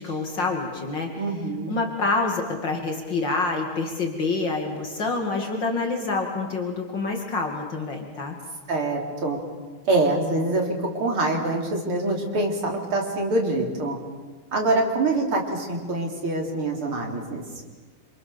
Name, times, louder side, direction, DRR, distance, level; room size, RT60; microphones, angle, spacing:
voice 1, 0.0-1.1 1.7-8.4, left 3 dB, 60° left, 2 dB, 3.1 m, -27 dB
voice 2, 1.2-1.8 8.7-9.4 9.9-14.0 14.5-17.4, right 2 dB, 90° right, 1 dB, 4.5 m, -25 dB
27.5 x 27.0 x 7.0 m, 1.4 s
omnidirectional pair, 2.3 m